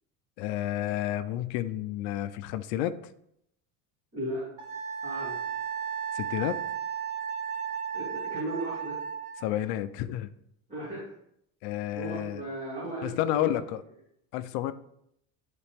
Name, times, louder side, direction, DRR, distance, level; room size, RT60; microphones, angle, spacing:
voice 1, 0.4-3.0 6.1-6.6 9.4-10.3 11.6-12.4 13.0-13.8 14.3-14.7, left 12 dB, 65° left, 13 dB, 0.5 m, -30 dB
voice 2, 4.1-4.4 5.0-5.4 7.9-9.0 10.7-11.1 11.9-13.5, right 1 dB, 20° right, -10 dB, 2.7 m, -36 dB
Wind instrument woodwind instrument, 4.6-9.4, right 8 dB, 45° right, 1.5 m, -34 dB
11.5 x 4.1 x 3.5 m, 0.76 s
cardioid pair, 175°, 39 cm